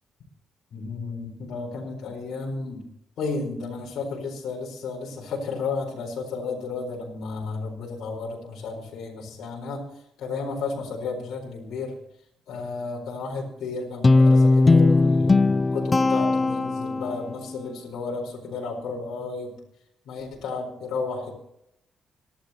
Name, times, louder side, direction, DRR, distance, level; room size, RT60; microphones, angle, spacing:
voice 1, 0.7-2.8 3.2-9.8 10.2-11.9 12.5-19.5 20.1-21.3, left 4 dB, 75° left, -2 dB, 4.5 m, -33 dB
Guitar, 14.0-17.3, left 3 dB, 30° left, 0.6 m, -18 dB
26.5 x 11.5 x 3.0 m, 0.76 s
cardioid pair, 70°, 0 cm